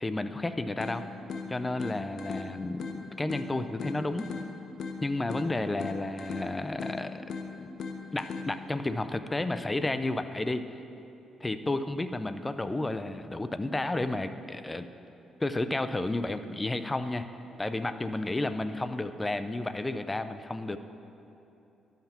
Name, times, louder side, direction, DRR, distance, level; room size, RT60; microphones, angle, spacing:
voice 1, 0.0-1.1 1.5-4.3 5.0-7.2 7.6-7.7 8.1-10.7 11.4-14.9 15.4-17.3 17.6-20.8, left 2 dB, 15° left, 10 dB, 0.4 m, -32 dB
sound 1, 0.8-8.8, left 4 dB, 60° left, 0.8 m, -40 dB
12.5 x 5.8 x 4.4 m, 2.9 s
cardioid pair, 90°, 0 cm